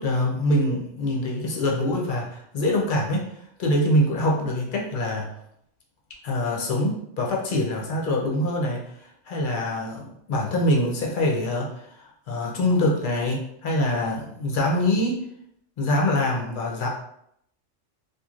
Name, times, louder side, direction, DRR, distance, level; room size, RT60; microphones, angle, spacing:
voice 1, 0.0-3.3 3.6-5.3 6.2-15.2 15.8-16.9, left 1 dB, 55° left, -2 dB, 0.6 m, -24 dB
3.0 x 2.4 x 2.4 m, 0.74 s
omnidirectional pair, 1.3 m